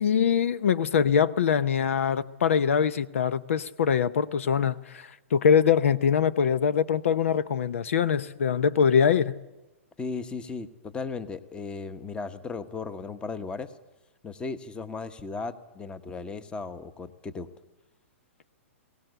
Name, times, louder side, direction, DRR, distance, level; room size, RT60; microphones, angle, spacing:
voice 1, 0.0-9.3, left 7 dB, 75° left, 0.8 m, -23 dB
voice 2, 10.0-13.7 14.2-17.5, left 4 dB, 15° left, 1.1 m, -36 dB
21.0 x 18.0 x 8.0 m
hypercardioid pair, 130°, 7 cm